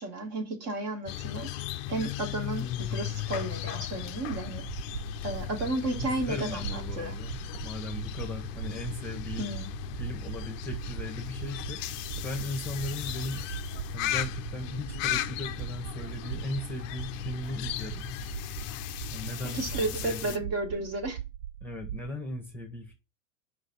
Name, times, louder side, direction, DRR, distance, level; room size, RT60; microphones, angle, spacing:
voice 1, 0.0-1.5 1.9-4.6 5.2-6.6 7.0-7.1 9.4-9.7 19.4-21.2, right 2 dB, 40° right, 1.9 m, -33 dB
sound 1, 1.1-20.4, left 12 dB, 30° left, 0.5 m, -36 dB
sound 2, 4.2-22.1, right 11 dB, 70° right, 0.6 m, -41 dB
voice 2, 6.0-9.5 10.0-11.8 12.2-13.5 13.9-18.0 19.1-20.4 21.6-22.9, left 1 dB, 5° left, 1.2 m, -38 dB
5.2 x 4.0 x 5.3 m
figure-of-eight pair, 95°, 39 cm